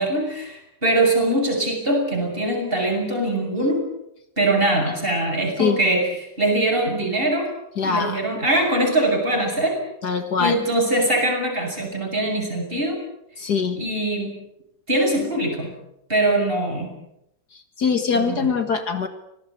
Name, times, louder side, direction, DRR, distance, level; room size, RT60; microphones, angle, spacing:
voice 1, 0.0-3.8 4.4-6.1 6.4-7.5 7.8-9.8 10.4-13.0 13.8-14.3 14.9-15.7 16.1-16.9 18.1-18.4, right 1 dB, 30° right, 1 dB, 7.8 m, -22 dB
voice 2, 7.8-8.2 10.0-10.6 13.4-13.8 17.5-19.1, left 5 dB, 60° left, 8 dB, 2.2 m, -23 dB
25.5 x 19.0 x 8.6 m, 0.80 s
omnidirectional pair, 2.0 m